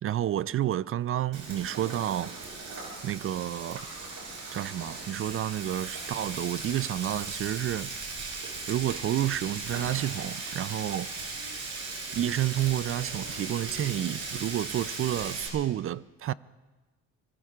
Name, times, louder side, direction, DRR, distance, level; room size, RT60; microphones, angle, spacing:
voice 1, 0.0-2.3 3.0-3.9 4.5-8.2 8.7-11.1 12.1-16.3, right 12 dB, 45° right, 0.4 m, -30 dB
Frying (food), 1.3-15.5, right 3 dB, 65° right, 6.2 m, -38 dB
24.5 x 23.0 x 2.4 m
cardioid pair, 85°, 32 cm